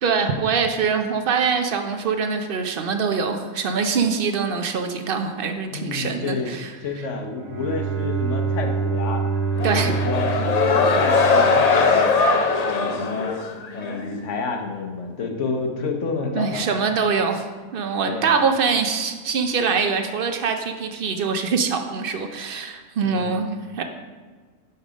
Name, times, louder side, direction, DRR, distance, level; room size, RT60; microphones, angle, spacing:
voice 1, 0.0-6.7 9.6-9.9 16.3-17.4 17.7-23.8, right 5 dB, 60° right, 6 dB, 0.6 m, -23 dB
voice 2, 5.7-6.5 6.8-9.2 9.7-12.2 12.6-13.4 13.7-16.8 18.1-18.3 23.0-23.4, left 4 dB, 65° left, 3 dB, 1.1 m, -30 dB
Bowed string instrument, 7.3-12.2, right 4 dB, 90° right, 1.3 m, -26 dB
sound 1, 9.6-14.1, left 4 dB, 90° left, 0.3 m, -20 dB
5.5 x 5.3 x 5.0 m, 1.5 s
omnidirectional pair, 1.4 m